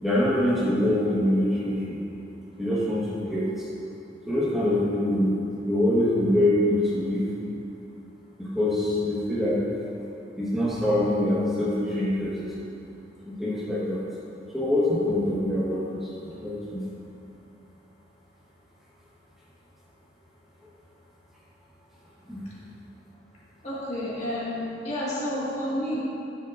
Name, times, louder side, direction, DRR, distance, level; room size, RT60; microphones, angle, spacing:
voice 1, 0.0-2.0 2.6-3.7 4.3-7.2 8.4-9.6 10.4-12.3 13.2-14.0 14.5-16.9 22.3-22.4, left 1 dB, ahead, -10 dB, 1.4 m, -24 dB
voice 2, 23.6-26.0, left 1 dB, 40° left, -7 dB, 2.0 m, -30 dB
12.0 x 7.4 x 2.6 m, 2.7 s
head